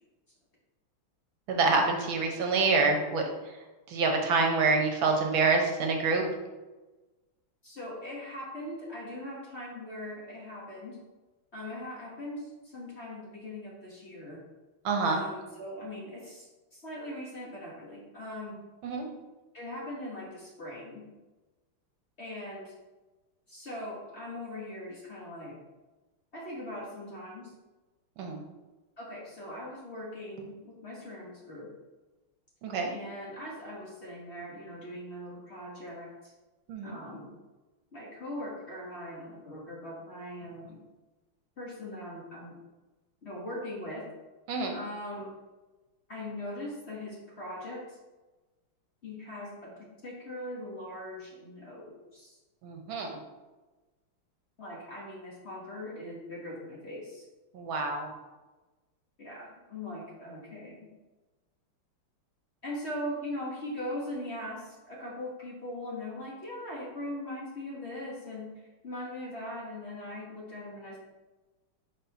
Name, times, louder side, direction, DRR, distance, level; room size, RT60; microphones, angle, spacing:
voice 1, 1.5-3.2 3.9-6.2 14.8-15.2 18.8-19.1 28.2-28.4 32.6-32.9 36.7-37.0 44.5-44.8 52.6-53.1 57.5-58.1, right 4 dB, 70° right, 2 dB, 1.5 m, -26 dB
voice 2, 7.6-11.0 11.5-14.4 15.0-18.6 19.5-21.0 22.2-22.7 23.5-25.6 26.3-27.5 29.0-31.7 32.9-36.3 36.8-37.3 37.9-40.8 41.6-42.6 43.2-44.1 44.7-45.3 46.1-48.0 49.0-52.4 54.6-57.2 59.2-60.9 62.6-68.5 68.8-71.0, left 1 dB, 40° left, -5 dB, 1.0 m, -40 dB
4.4 x 4.0 x 5.5 m, 1.2 s
omnidirectional pair, 2.4 m